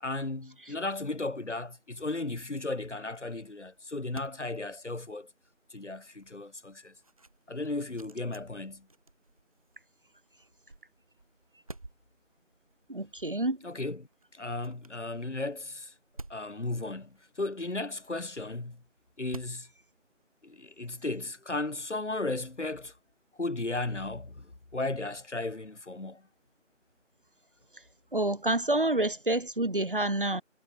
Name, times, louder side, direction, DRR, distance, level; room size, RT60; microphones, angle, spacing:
voice 1, 0.0-5.3 5.7-6.9 7.5-8.9 13.6-15.9 16.3-18.8 19.2-19.7 20.4-22.9 23.4-26.3, left 2 dB, 65° left, 1.9 m, -35 dB
sound 1, 3.2-20.6, right 2 dB, 25° right, 4.5 m, -54 dB
voice 2, 12.9-13.6 28.1-30.4, right 1 dB, 40° right, 1.4 m, -28 dB
figure-of-eight pair, 175°, 38 cm